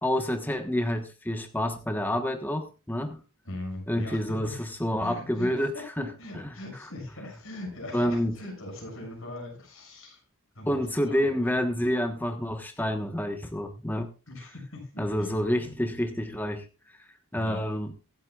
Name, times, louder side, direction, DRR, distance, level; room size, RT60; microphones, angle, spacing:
voice 1, 0.0-3.2 3.9-5.7 6.0-6.1 7.9-8.3 10.7-14.1 15.0-16.7 17.3-17.9, equal, 10° left, 5 dB, 1.2 m, -28 dB
voice 2, 3.4-4.4 5.0-10.2 10.5-11.9 14.3-15.3 15.6-15.9 17.3-17.6, left 2 dB, 70° left, 1 dB, 6.6 m, -41 dB
24.0 x 8.1 x 2.4 m, 0.31 s
head